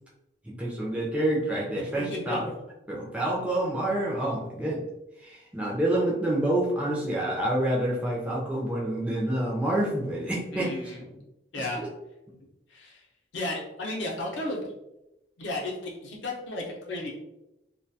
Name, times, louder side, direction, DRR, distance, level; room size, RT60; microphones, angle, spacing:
voice 1, 0.4-2.5 2.9-4.8 5.2-10.9 11.6-11.9, right 1 dB, 5° right, -5 dB, 0.4 m, -28 dB
voice 2, 1.7-2.5 10.5-11.2 11.5-11.8 12.7-13.0 13.3-14.6 15.4-17.1, left 2 dB, 90° left, -1 dB, 0.6 m, -34 dB
2.2 x 2.2 x 2.6 m, 0.91 s
head